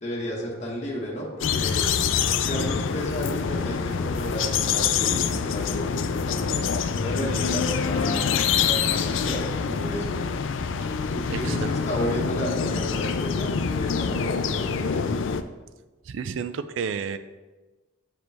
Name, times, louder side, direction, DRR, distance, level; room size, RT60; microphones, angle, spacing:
voice 1, 0.0-1.9 2.4-6.6 6.9-10.2 11.1-15.2, equal, 35° left, -3 dB, 1.1 m, -33 dB
sound 1, 1.4-15.4, left 6 dB, 70° left, 0.4 m, -26 dB
voice 2, 11.3-11.7 16.1-17.2, right 6 dB, 70° right, 11 dB, 0.4 m, -31 dB
7.7 x 5.1 x 3.4 m, 1.2 s
head